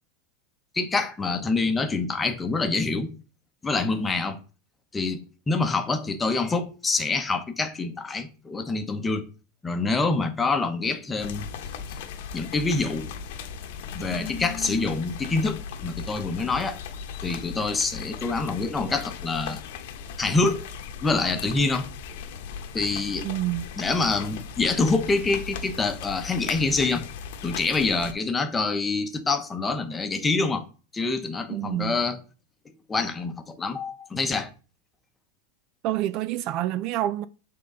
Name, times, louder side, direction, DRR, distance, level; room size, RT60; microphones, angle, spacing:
voice 1, 0.7-3.1 3.6-4.4 4.9-9.3 9.6-11.5 12.3-13.1 13.9-16.8 17.2-19.6 20.2-20.6 21.0-21.9 22.7-23.3 23.8-27.0 27.4-30.6 30.9-32.2 32.9-34.5, left 3 dB, 15° left, 0.9 m, -26 dB
sound 1, 11.2-28.1, left 6 dB, 65° left, 0.9 m, -37 dB
voice 2, 23.2-23.7 31.5-32.0 35.8-37.3, right 14 dB, 45° right, 0.3 m, -27 dB
7.6 x 3.8 x 3.8 m
supercardioid pair, 145°, 0 cm